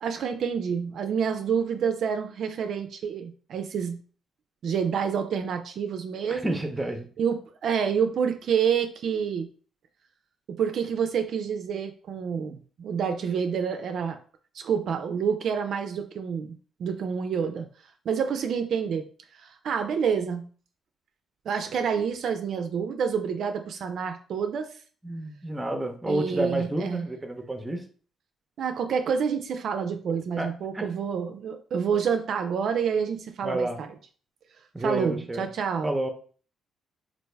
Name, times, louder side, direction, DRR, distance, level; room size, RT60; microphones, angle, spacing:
voice 1, 0.0-4.0 4.6-6.6 7.2-9.5 10.5-14.2 14.5-16.5 16.8-17.7 18.1-19.1 19.4-20.4 21.5-24.8 26.0-27.0 28.6-33.9 34.8-35.9, right 7 dB, 65° right, 7 dB, 0.3 m, -28 dB
voice 2, 6.3-7.0 25.0-27.8 30.4-30.5 30.7-30.9 33.4-33.8 34.7-35.4 35.8-36.1, right 1 dB, 15° right, 5 dB, 0.6 m, -29 dB
3.3 x 2.5 x 3.2 m, 0.42 s
cardioid pair, 90°, 0 cm